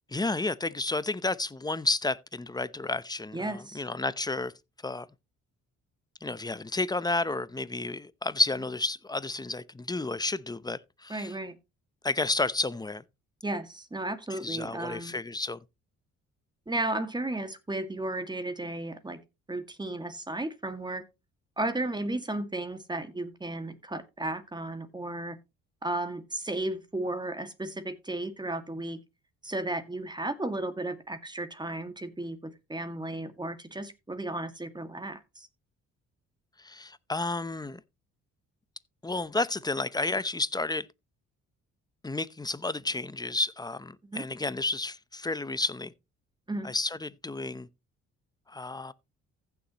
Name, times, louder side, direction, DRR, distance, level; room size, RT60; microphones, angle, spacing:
voice 1, 0.1-4.5 4.8-5.1 6.2-11.3 12.0-13.0 14.3-15.6 36.6-37.8 39.0-40.9 42.0-45.9 46.6-47.7 48.5-48.9, left 2 dB, 15° left, 0.8 m, -31 dB
voice 2, 3.3-3.8 11.1-11.5 13.4-15.1 16.7-19.2 19.5-21.0 21.6-25.4 25.8-29.0 29.4-35.5 44.0-44.2 46.5-46.7, right 2 dB, 15° right, 2.1 m, -34 dB
15.0 x 7.1 x 3.0 m
cardioid pair, 90°, 30 cm